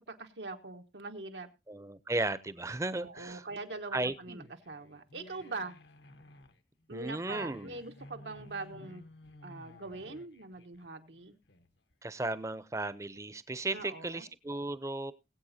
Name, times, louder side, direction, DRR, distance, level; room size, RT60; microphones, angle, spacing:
voice 1, 0.1-1.5 3.0-5.7 6.9-9.0 9.4-11.3 13.7-14.3, right 3 dB, 90° right, 5 dB, 1.2 m, -42 dB
voice 2, 1.7-3.4 3.9-4.4 6.9-7.7 12.0-15.1, right 2 dB, 15° right, 16 dB, 0.5 m, -35 dB
sound 1, 2.9-11.9, left 1 dB, 80° left, 1.1 m, -55 dB
21.5 x 8.1 x 2.7 m, 0.26 s
head